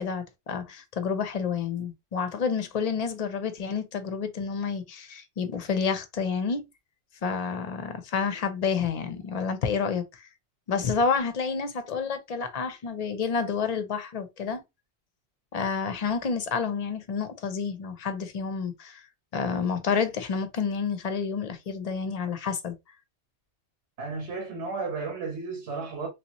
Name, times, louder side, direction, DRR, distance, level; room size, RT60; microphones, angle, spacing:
voice 1, 0.0-6.6 7.2-10.3 10.7-14.6 15.5-19.0 19.3-22.8, left 5 dB, 45° left, 0.6 m, -29 dB
voice 2, 24.0-26.1, right 4 dB, 75° right, 1.3 m, -33 dB
3.4 x 2.8 x 2.8 m
omnidirectional pair, 1.2 m